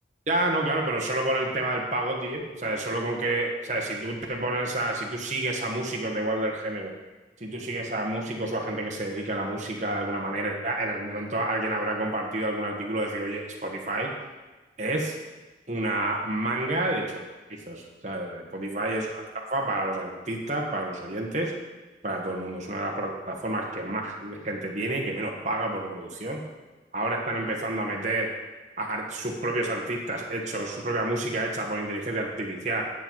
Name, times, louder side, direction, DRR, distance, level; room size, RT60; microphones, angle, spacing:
voice 1, 0.3-6.9 7.4-14.1 14.8-15.1 15.7-17.2 17.5-19.1 19.3-21.5 22.0-26.4 26.9-28.3 28.8-32.8, right 1 dB, 40° right, 0 dB, 1.4 m, -29 dB
9.8 x 7.3 x 4.7 m, 1.2 s
head